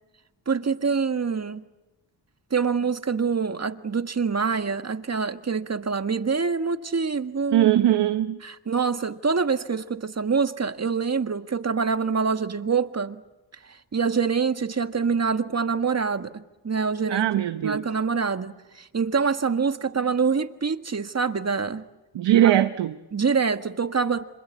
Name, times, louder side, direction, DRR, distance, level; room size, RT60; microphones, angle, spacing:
voice 1, 0.5-1.6 2.5-7.7 8.4-13.2 13.7-17.3 17.6-21.8 22.4-22.5 23.1-24.2, right 5 dB, 35° right, 9 dB, 1.6 m, -25 dB
voice 2, 7.5-8.4 17.1-17.9 22.1-23.0, right 12 dB, 85° right, 10 dB, 1.0 m, -20 dB
26.5 x 26.0 x 8.3 m, 1.1 s
cardioid pair, 60°, 43 cm